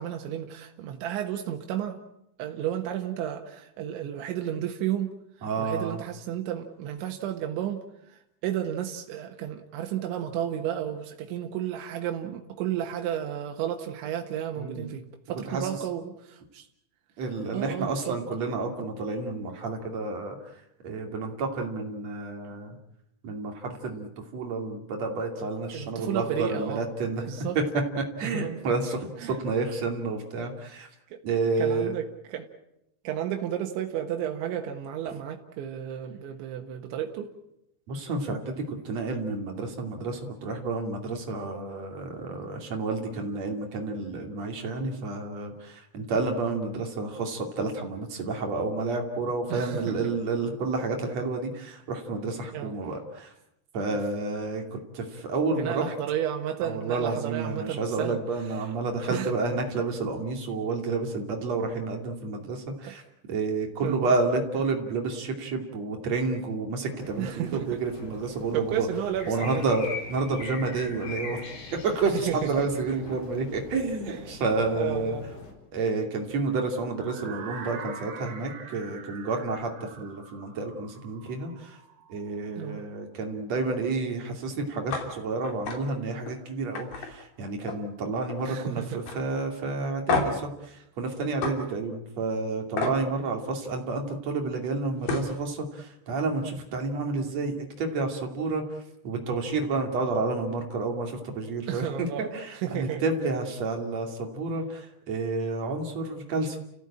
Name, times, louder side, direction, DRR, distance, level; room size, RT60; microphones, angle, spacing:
voice 1, 0.0-2.0 2.4-5.1 5.6-7.8 8.1-16.7 17.5-18.2 25.7-26.9 27.3-27.6 28.2-28.6 29.2-29.4 31.1-31.2 31.6-32.5 33.1-37.3 49.5-50.1 52.5-52.7 53.9-54.0 55.5-58.2 58.5-58.7 59.1-59.3 62.9-63.0 63.8-64.1 67.2-67.8 68.5-69.6 72.3-72.7 74.1-74.2 74.7-75.3 82.6-82.8 88.5-89.0 101.7-103.0, right 10 dB, 90° right, 3 dB, 3.8 m, -32 dB
voice 2, 5.4-6.0 14.6-14.8 15.5-15.8 17.2-20.4 20.8-22.8 23.2-24.1 24.3-27.3 27.5-27.6 28.0-30.9 31.2-31.9 37.9-53.3 53.7-55.8 56.6-63.0 63.3-68.9 69.3-69.8 70.1-71.4 71.7-75.2 75.7-79.7 80.0-81.8 82.1-98.6 99.0-101.9 102.2-106.6, right 3 dB, 40° right, 3 dB, 3.4 m, -30 dB
sound 1, 67.0-75.5, left 4 dB, 85° left, 6.7 m, -42 dB
sound 2, 77.0-82.9, right 6 dB, 60° right, 4.3 m, -44 dB
sound 3, 84.9-85.1 85.4-85.8 86.2-86.3 86.8-87.9 88.2-88.6 89.1-89.2 90.1-90.5 91.4-91.6 92.8-93.0 94.6-94.7 95.0-95.3, left 4 dB, 50° left, 4.1 m, -29 dB
30.0 x 15.5 x 8.8 m, 0.83 s
omnidirectional pair, 5.2 m